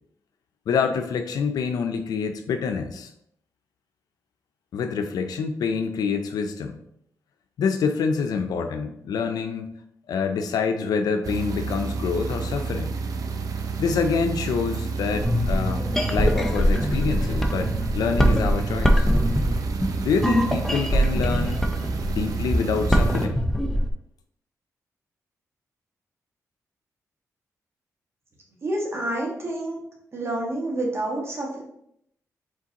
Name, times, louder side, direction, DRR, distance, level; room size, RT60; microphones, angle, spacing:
voice 1, 0.7-3.1 4.7-6.8 7.6-9.7 10.1-12.9 13.8-19.1 20.0-21.6 22.1-23.4, left 5 dB, 85° left, 7 dB, 0.5 m, -26 dB
sound 1, 11.2-23.3, right 5 dB, 70° right, 0.5 m, -30 dB
sound 2, 15.1-23.9, equal, 5° left, 0.6 m, -23 dB
voice 2, 28.6-29.8 30.1-31.6, right 1 dB, 45° right, -2 dB, 1.7 m, -28 dB
4.9 x 3.8 x 2.9 m, 0.74 s
cardioid pair, 75°, 6 cm